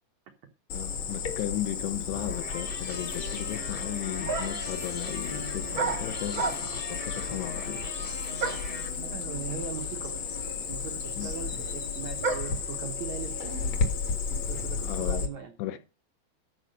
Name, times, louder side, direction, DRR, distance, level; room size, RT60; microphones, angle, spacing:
voice 1, 0.7-7.8 11.2-11.6 14.8-15.3 15.6-15.8, left 13 dB, 75° left, 2.6 m, -36 dB
Cricket, 0.7-15.3, left 5 dB, 55° left, 1.9 m, -33 dB
sound 1, 2.0-8.9, left 1 dB, 25° left, 0.7 m, -41 dB
sound 2, 3.8-3.9 4.3-4.7 5.7-6.9 8.4-8.8 9.7-9.8 10.0-12.7, right 5 dB, 65° right, 1.2 m, -33 dB
voice 2, 9.0-10.3 10.7-13.8 14.4-15.5, right 7 dB, 85° right, 1.6 m, -39 dB
12.5 x 4.9 x 6.6 m
omnidirectional pair, 5.2 m